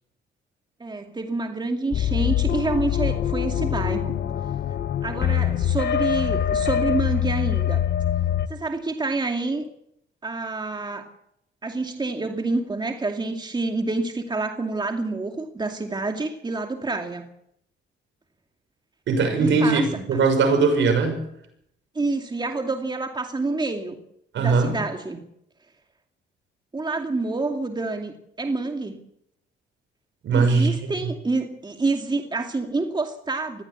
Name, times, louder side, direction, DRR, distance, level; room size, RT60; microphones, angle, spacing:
voice 1, 0.8-4.2 5.0-7.8 8.5-9.6 10.2-11.1 11.6-17.3 19.4-19.9 21.9-24.0 24.4-25.2 26.7-29.0 30.3-33.6, right 3 dB, 20° right, 4 dB, 2.4 m, -28 dB
sound 1, 1.9-8.5, left 10 dB, 55° left, 1.3 m, -24 dB
voice 2, 19.1-19.8 20.1-21.2 24.3-24.7 30.2-30.9, right 4 dB, 70° right, 6 dB, 6.3 m, -20 dB
21.0 x 15.0 x 8.5 m, 0.75 s
cardioid pair, 90°, 20 cm